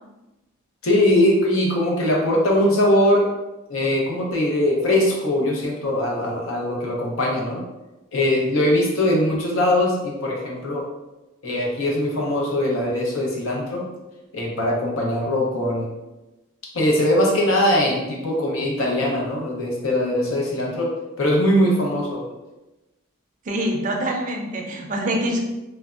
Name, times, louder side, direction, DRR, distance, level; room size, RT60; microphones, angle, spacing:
voice 1, 0.8-3.2 3.7-7.6 8.1-10.8 11.4-13.9 14.3-15.9 16.7-20.9 21.2-22.2, left 1 dB, 75° left, -1 dB, 0.7 m, -21 dB
voice 2, 23.5-25.4, right 1 dB, 35° right, 2 dB, 0.4 m, -25 dB
3.3 x 2.1 x 2.4 m, 1.0 s
head